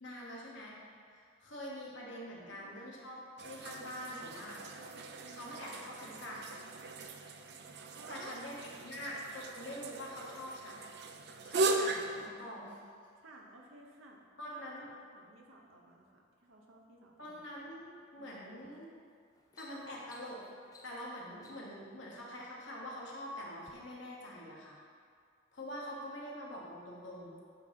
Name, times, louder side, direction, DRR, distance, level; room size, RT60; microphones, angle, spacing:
voice 1, 0.0-0.8 1.1-4.6 5.3-6.4 8.1-11.0 11.4-12.8 14.4-14.9 17.2-17.8 18.1-18.9 19.6-20.4 20.8-24.8 25.5-27.3, equal, 65° left, -4 dB, 1.2 m, -45 dB
sound 1, 3.4-12.3, right 2 dB, 55° right, 0.4 m, -38 dB
voice 2, 4.9-5.8 7.9-8.4 13.2-14.6 14.9-17.4 18.2-18.4, right 2 dB, 80° right, 0 dB, 0.9 m, -56 dB
sound 2, 18.6-18.8 19.2-21.8 22.7-23.2 23.6-23.7, left 2 dB, 20° left, 0.4 m, -59 dB
8.0 x 2.9 x 5.1 m, 2.1 s
head